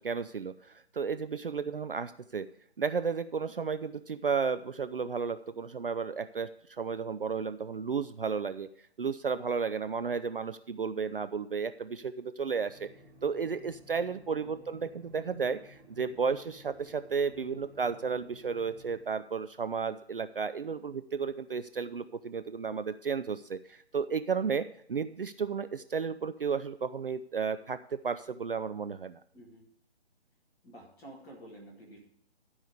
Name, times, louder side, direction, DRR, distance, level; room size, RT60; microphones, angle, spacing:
voice 1, 0.0-2.5 2.8-8.7 9.0-12.9 13.2-29.2, right 5 dB, 55° right, 12 dB, 0.5 m, -33 dB
sound 1, 12.7-19.0, equal, 10° right, 3.0 m, -56 dB
voice 2, 29.3-29.6 30.6-32.0, right 1 dB, 10° left, -5 dB, 2.0 m, -50 dB
12.5 x 5.5 x 6.7 m, 0.67 s
figure-of-eight pair, 145°, 33 cm